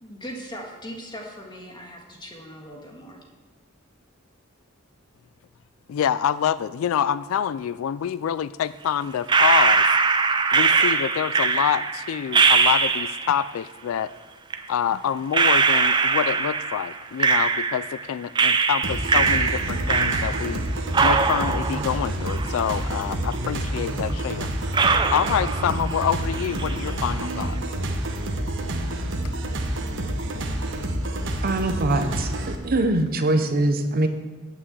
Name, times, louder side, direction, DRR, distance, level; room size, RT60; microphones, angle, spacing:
voice 1, 0.0-3.2, equal, 20° left, 1 dB, 1.7 m, -39 dB
voice 2, 5.9-9.9 10.5-14.1 14.7-20.6 21.0-24.8 25.1-27.6 29.2-29.3, left 9 dB, 75° left, 16 dB, 0.3 m, -26 dB
sound 1, 9.3-13.4 14.5-14.6 15.3-18.0 18.4-20.6 20.9-23.0 23.3-23.4 24.1-24.2 24.7-26.1 26.3-26.9, right 4 dB, 20° right, 0.5 m, -21 dB
sound 2, 18.8-32.6, right 1 dB, 60° right, 1.1 m, -28 dB
voice 3, 31.4-34.1, right 2 dB, 45° right, 7 dB, 0.8 m, -23 dB
9.4 x 6.0 x 7.9 m, 1.4 s
head